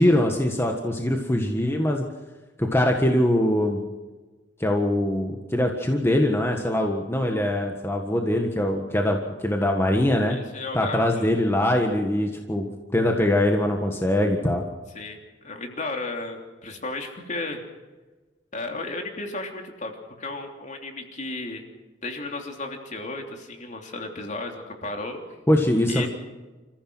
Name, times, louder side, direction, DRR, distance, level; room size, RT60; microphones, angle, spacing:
voice 1, 0.0-2.0 2.6-3.8 4.6-10.4 10.7-12.7 12.9-14.6 25.5-26.1, left 1 dB, 15° left, 2 dB, 1.6 m, -22 dB
voice 2, 10.3-11.2 14.9-17.6 18.5-19.9 20.2-21.6 22.0-25.2 25.9-26.1, left 2 dB, 40° left, 3 dB, 3.2 m, -34 dB
28.0 x 15.0 x 6.3 m, 1.3 s
head